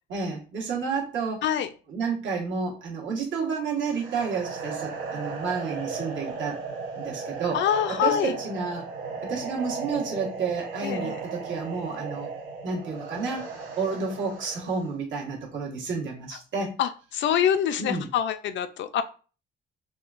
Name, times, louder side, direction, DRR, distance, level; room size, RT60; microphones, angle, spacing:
voice 1, 0.1-1.5 1.9-6.6 7.0-7.6 7.9-8.9 9.2-12.3 12.6-16.7 17.8-18.1, right 5 dB, 75° right, -2 dB, 1.3 m, -30 dB
sound 1, 3.8-14.9, right 4 dB, 90° right, 0.8 m, -36 dB
voice 2, 7.5-8.3 10.8-11.2 16.8-19.0, left 9 dB, 70° left, 11 dB, 0.4 m, -25 dB
3.5 x 2.3 x 2.4 m, 0.36 s
cardioid pair, 90°, 20 cm